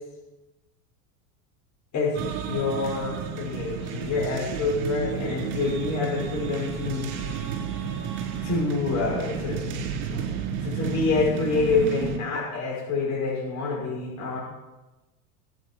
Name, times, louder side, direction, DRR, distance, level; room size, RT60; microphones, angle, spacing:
voice 1, 1.9-7.1 8.4-10.3 10.6-14.4, left 4 dB, 40° left, -5 dB, 5.8 m, -27 dB
sound 1, 2.1-12.2, right 7 dB, 60° right, 4.1 m, -32 dB
23.5 x 9.0 x 4.7 m, 1.1 s
supercardioid pair, 130°, 45 cm